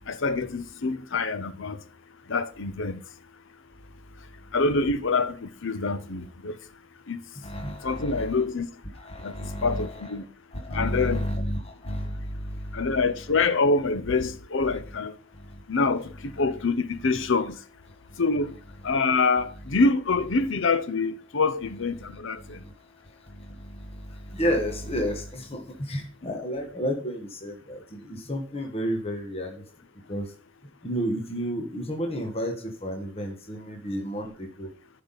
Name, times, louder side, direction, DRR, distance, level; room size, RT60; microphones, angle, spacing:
voice 1, 0.1-1.8 2.3-3.0 4.5-6.6 7.1-7.2 7.8-8.7 9.2-9.3 9.6-10.2 10.7-11.3 12.7-15.1 15.7-17.5 18.2-18.6 18.8-22.6 26.2-26.3, left 3 dB, 65° left, 0.7 m, -25 dB
voice 2, 7.4-8.4 8.9-10.1 10.5-12.9 15.3-15.6 22.0-22.7 23.3-29.6 30.1-30.3 30.8-34.7, equal, 30° left, 1.3 m, -32 dB
10.5 x 5.7 x 4.1 m
head